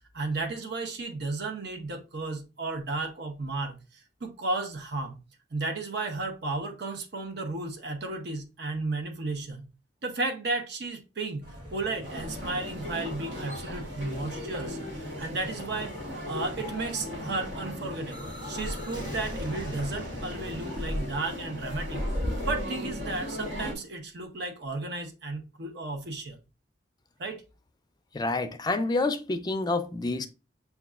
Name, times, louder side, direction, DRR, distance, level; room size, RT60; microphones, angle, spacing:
voice 1, 0.1-5.2 5.5-9.7 10.0-15.9 16.2-22.0 22.4-26.4 27.2-27.4, right 3 dB, 65° right, 0.8 m, -34 dB
sound 1, 11.4-20.1, equal, 50° right, 1.6 m, -46 dB
sound 2, 12.0-23.7, left 1 dB, 90° right, 1.2 m, -36 dB
sound 3, 18.1-23.8, left 1 dB, 25° right, 1.2 m, -44 dB
voice 2, 28.1-30.3, left 2 dB, 25° left, 0.4 m, -28 dB
6.6 x 2.3 x 2.4 m
head